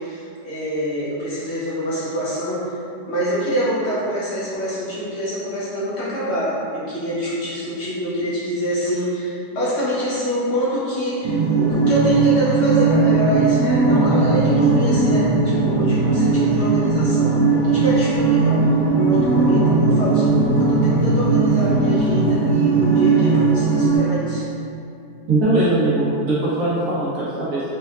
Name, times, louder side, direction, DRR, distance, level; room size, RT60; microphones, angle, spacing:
voice 1, 0.0-2.7 3.1-17.3 17.6-18.5 18.9-24.4, equal, 60° left, -8 dB, 0.7 m, -25 dB
sound 1, 11.2-24.0, right 3 dB, 85° right, 1.4 m, -18 dB
voice 2, 25.3-27.6, right 2 dB, 65° right, -9 dB, 1.2 m, -20 dB
4.4 x 2.2 x 2.3 m, 2.6 s
omnidirectional pair, 1.8 m